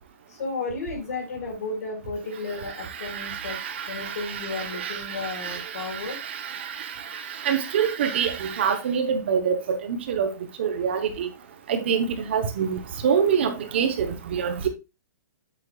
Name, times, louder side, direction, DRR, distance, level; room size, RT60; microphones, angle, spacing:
voice 1, 0.3-3.6 3.9-6.2, left 3 dB, 55° left, 4.9 m, -33 dB
voice 2, 3.0-10.3 10.6-11.3 11.7-14.7, right 7 dB, 35° right, 1.0 m, -26 dB
8.4 x 7.6 x 2.4 m
hypercardioid pair, 180°, 10 cm